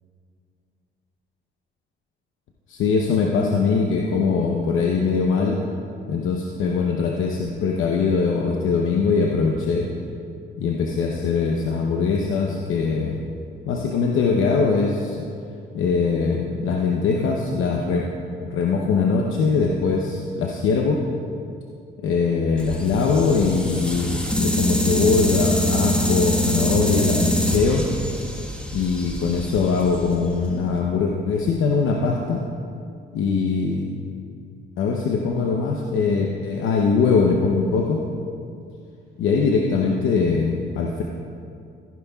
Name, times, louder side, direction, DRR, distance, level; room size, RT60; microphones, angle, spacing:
voice 1, 2.7-5.6 6.1-9.9 10.6-13.2 13.7-15.3 15.7-18.1 18.4-21.0 22.0-27.8 28.7-32.4 33.1-33.9 34.8-38.0 39.2-41.0, left 5 dB, 85° left, 0 dB, 0.8 m, -22 dB
sound 1, 22.6-30.7, equal, 5° left, 1.4 m, -24 dB
15.0 x 10.5 x 2.4 m, 2.4 s
cardioid pair, 90°, 20 cm